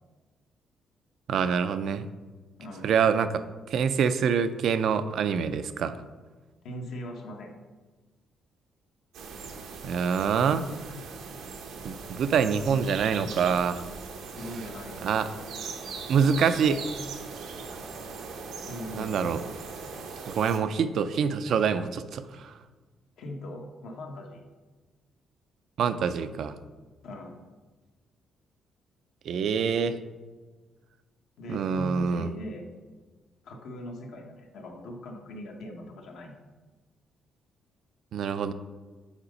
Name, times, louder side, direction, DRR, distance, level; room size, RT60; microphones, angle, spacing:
voice 1, 1.3-2.1 2.8-6.0 9.8-10.7 11.8-13.8 15.0-15.3 16.1-16.8 17.7-17.8 19.0-19.4 20.3-22.5 25.8-26.6 29.2-30.0 31.5-32.3 38.1-38.5, right 6 dB, 70° right, 12 dB, 0.4 m, -26 dB
voice 2, 2.6-2.9 6.6-7.5 14.4-15.1 18.7-19.2 23.2-24.4 27.0-27.4 31.4-32.7 33.4-36.3, left 1 dB, 80° left, 1 dB, 1.2 m, -40 dB
sound 1, 9.1-20.6, right 4 dB, 85° right, 0.9 m, -40 dB
7.2 x 4.0 x 5.2 m, 1.3 s
cardioid pair, 90°, 0 cm